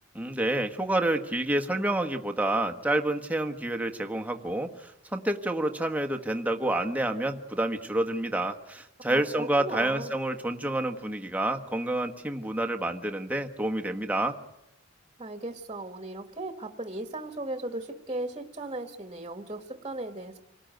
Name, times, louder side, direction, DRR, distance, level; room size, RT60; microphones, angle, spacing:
voice 1, 0.1-14.4, right 1 dB, 5° right, 4 dB, 1.3 m, -28 dB
voice 2, 9.1-10.1 15.2-20.4, right 2 dB, 25° right, 7 dB, 1.7 m, -37 dB
27.5 x 18.5 x 9.1 m, 0.87 s
head